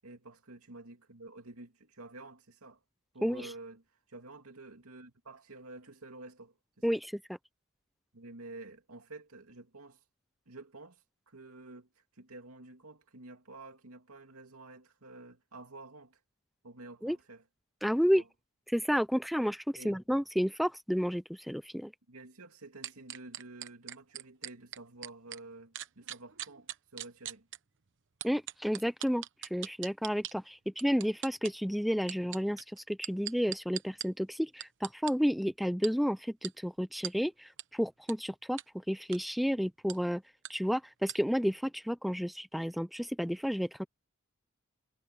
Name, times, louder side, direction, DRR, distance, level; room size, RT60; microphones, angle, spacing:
voice 1, 0.0-2.8 3.1-7.0 8.1-10.0 10.5-16.2 16.6-17.4 18.0-18.3 19.8-20.0 22.1-27.5, right 2 dB, 75° right, 2.8 m, -50 dB
voice 2, 17.8-18.2 18.7-21.9 28.2-29.2 29.5-38.6 38.9-40.2 40.5-43.8, equal, ahead, 0.4 m, -31 dB
sound 1, 22.8-25.4 25.7-27.6 28.2-30.3 30.8-31.5 32.0-34.1 34.6-35.1 35.8-35.9 36.4-36.5 37.0-37.1 37.6-37.7 38.1-38.2 38.6-38.7 39.0-39.2 39.9-40.0 40.4-40.5 41.1-41.2, right 12 dB, 60° right, 1.0 m, -40 dB
head